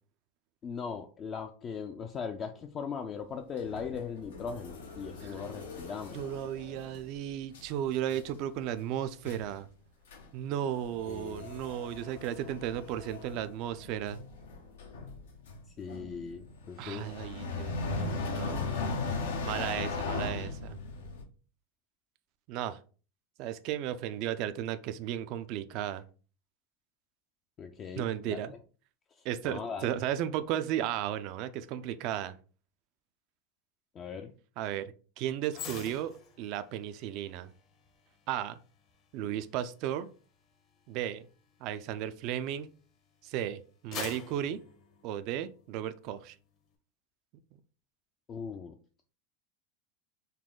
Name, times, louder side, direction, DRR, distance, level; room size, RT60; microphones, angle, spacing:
voice 1, 0.6-6.2 11.1-11.5 15.8-17.1 27.6-28.6 29.2-29.9 33.9-34.3 48.3-48.8, left 6 dB, 35° left, 0.4 m, -39 dB
sound 1, 3.6-7.2 7.5-7.8 8.1-8.4 8.8-8.9 9.2-9.6 10.1-10.3 10.5-21.2, left 3 dB, 85° left, 0.9 m, -38 dB
voice 2, 6.1-9.7 10.3-14.2 16.8-18.8 19.4-20.8 22.5-22.8 23.4-26.0 28.0-28.5 29.2-32.4 34.6-37.5 38.3-38.6 39.1-40.1 40.9-41.3 41.6-42.7 43.2-44.6 45.0-46.4, right 11 dB, 55° right, 0.4 m, -35 dB
sound 2, 35.5-42.9 43.4-45.7 46.1-46.3, left 6 dB, 50° left, 1.0 m, -47 dB
4.0 x 2.2 x 3.6 m
hypercardioid pair, 105°, 0 cm